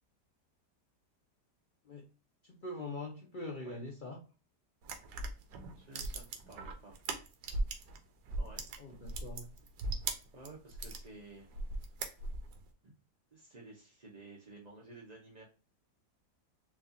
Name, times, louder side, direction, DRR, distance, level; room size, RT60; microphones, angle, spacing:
voice 1, 2.4-4.2 8.8-9.5, left 2 dB, 80° left, 0 dB, 0.4 m, -43 dB
sound 1, 4.8-8.0 8.3-11.0 11.5-12.6, right 3 dB, 80° right, 1.3 m, -38 dB
voice 2, 5.8-7.0 8.4-8.6 10.3-11.9 12.8-12.9 13.3-15.4, right 2 dB, 45° right, -3 dB, 0.5 m, -53 dB
4.6 x 2.4 x 2.6 m, 0.35 s
omnidirectional pair, 1.8 m